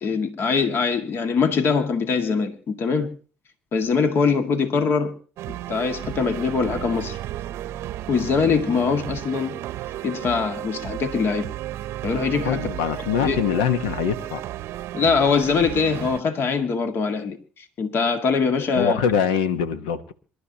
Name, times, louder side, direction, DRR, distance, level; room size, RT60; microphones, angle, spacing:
voice 1, 0.0-3.1 3.7-5.1 5.5-7.2 8.1-9.6 10.0-11.5 12.0-12.7 13.2-13.4 14.9-19.0, left 5 dB, 55° left, 2.0 m, -23 dB
sound 1, 5.4-16.2, right 14 dB, 70° right, 0.7 m, -33 dB
voice 2, 12.4-14.4 18.7-20.1, left 7 dB, 90° left, 1.2 m, -23 dB
26.0 x 12.0 x 2.9 m
hypercardioid pair, 65°, 5 cm